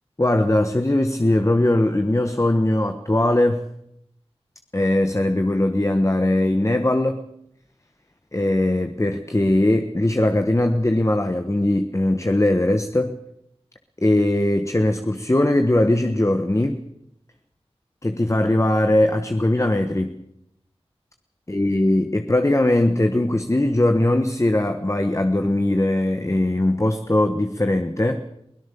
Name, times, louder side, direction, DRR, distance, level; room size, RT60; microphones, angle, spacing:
voice 1, 0.2-3.7 4.7-7.2 8.3-13.2 14.0-16.8 18.0-20.2 21.5-28.2, left 1 dB, 30° left, 7 dB, 1.4 m, -20 dB
23.0 x 17.5 x 7.0 m, 0.76 s
wide cardioid pair, 50°, 11 cm